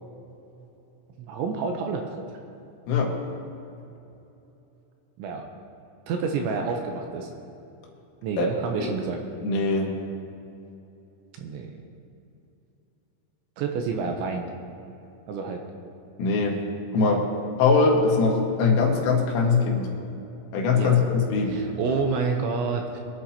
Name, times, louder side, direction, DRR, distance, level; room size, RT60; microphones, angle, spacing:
voice 1, 1.3-2.0 5.2-5.4 6.1-7.3 8.2-9.2 11.4-11.7 13.6-14.5 15.3-15.6 20.7-21.0 21.5-23.0, right 5 dB, 80° right, 3 dB, 2.9 m, -28 dB
voice 2, 9.4-9.9 16.2-16.6 16.9-17.2 17.6-19.9 20.5-21.7, left 4 dB, 75° left, -1 dB, 4.2 m, -22 dB
23.5 x 11.0 x 2.9 m, 2.8 s
omnidirectional pair, 5.8 m